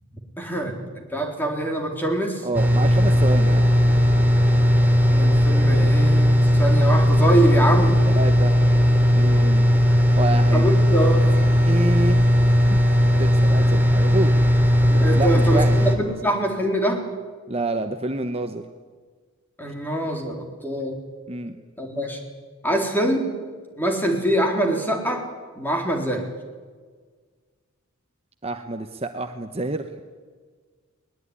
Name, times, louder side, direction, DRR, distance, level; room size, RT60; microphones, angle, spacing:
voice 1, 0.4-2.5 5.1-8.0 10.5-11.5 13.6-13.7 14.9-17.0 19.6-21.0 21.8-22.2 22.6-23.3 23.8-25.3 25.6-26.2, right 1 dB, 10° left, 2 dB, 4.0 m, -24 dB
voice 2, 2.4-3.6 8.1-8.6 9.1-9.6 10.2-10.7 11.6-12.2 12.7-12.8 13.2-14.3 15.1-15.7 16.0-16.1 17.5-18.6 21.3-21.6 28.4-29.9, right 2 dB, 30° right, 7 dB, 1.0 m, -27 dB
sound 1, 2.5-16.0, equal, 10° right, 2.9 m, -17 dB
21.5 x 20.5 x 9.9 m, 1.5 s
head